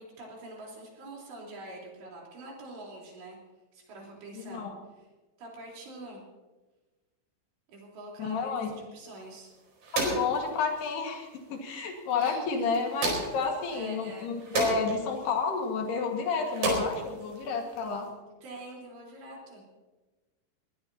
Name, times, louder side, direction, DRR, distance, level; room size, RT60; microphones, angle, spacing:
voice 1, 0.0-3.4 3.7-4.7 5.0-5.1 5.4-6.2 7.7-9.5 12.2-12.7 13.7-14.3 18.4-19.6, right 2 dB, 70° right, -2 dB, 6.0 m, -45 dB
voice 2, 4.4-4.7 8.2-8.7 10.0-18.1, left 5 dB, 65° left, 2 dB, 3.6 m, -30 dB
sound 1, 9.1-18.1, right 2 dB, 50° right, 5.9 m, -36 dB
21.5 x 19.0 x 2.8 m, 1.2 s
omnidirectional pair, 5.3 m